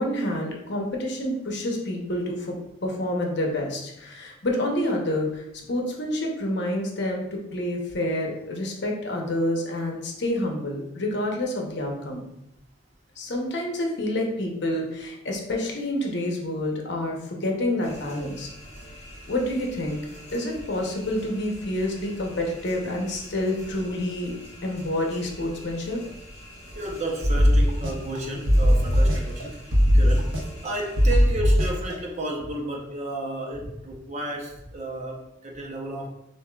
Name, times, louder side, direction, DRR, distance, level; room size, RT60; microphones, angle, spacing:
voice 1, 0.0-2.6 2.8-5.4 5.7-12.3 13.2-18.5 19.3-20.0 20.3-24.3 24.6-26.0, left 1 dB, 60° left, 0 dB, 0.8 m, -28 dB
sound 1, 17.8-31.3, equal, 35° left, 1.4 m, -44 dB
voice 2, 26.7-29.6 29.9-30.4 30.6-36.1, right 1 dB, 35° right, 0 dB, 0.7 m, -32 dB
sound 2, 27.2-28.2 28.5-29.4 29.7-30.7 31.0-31.9, equal, 80° right, 0.8 m, -19 dB
6.9 x 2.6 x 2.3 m, 0.82 s
head